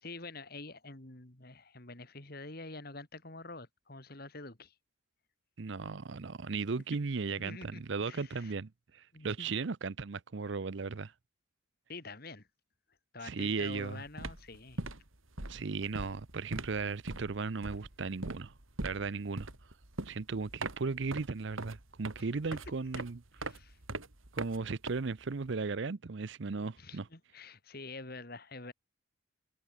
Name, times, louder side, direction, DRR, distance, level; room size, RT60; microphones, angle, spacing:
voice 1, 0.0-4.7 7.4-8.5 9.1-9.5 11.9-12.5 13.1-14.8 22.9-23.0 23.4-23.8 26.8-28.7, left 3 dB, 45° left, 2.6 m, -47 dB
voice 2, 5.6-11.1 13.2-14.0 15.5-18.5 18.8-19.5 20.1-23.2 24.3-27.1, right 4 dB, 60° right, 0.6 m, -36 dB
sound 1, 13.6-13.8 14.0-25.5, right 2 dB, 75° right, 3.2 m, -42 dB
head